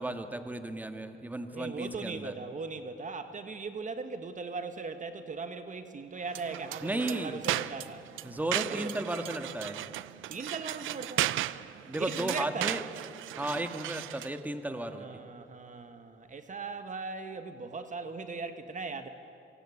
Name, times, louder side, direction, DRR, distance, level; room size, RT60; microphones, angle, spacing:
voice 1, 0.0-2.3 6.8-7.4 8.2-9.8 11.8-12.8 13.3-15.2, right 1 dB, 10° right, 7 dB, 1.8 m, -34 dB
voice 2, 1.5-8.0 8.7-8.9 10.3-11.3 12.0-12.8 14.7-19.1, right 4 dB, 40° right, 8 dB, 1.5 m, -39 dB
sound 1, 6.3-14.4, right 14 dB, 85° right, 0.7 m, -36 dB
26.0 x 23.5 x 8.6 m, 2.6 s
cardioid pair, 90°, 20 cm